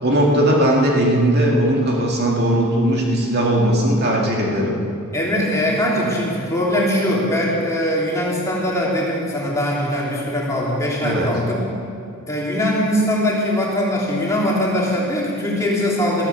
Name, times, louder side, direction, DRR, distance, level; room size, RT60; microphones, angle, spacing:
voice 1, 0.0-4.7 11.0-11.3, right 1 dB, 45° right, -2 dB, 2.2 m, -18 dB
voice 2, 5.1-11.6 12.3-16.3, left 1 dB, 15° left, -5 dB, 3.2 m, -21 dB
14.0 x 13.0 x 7.1 m, 2.4 s
head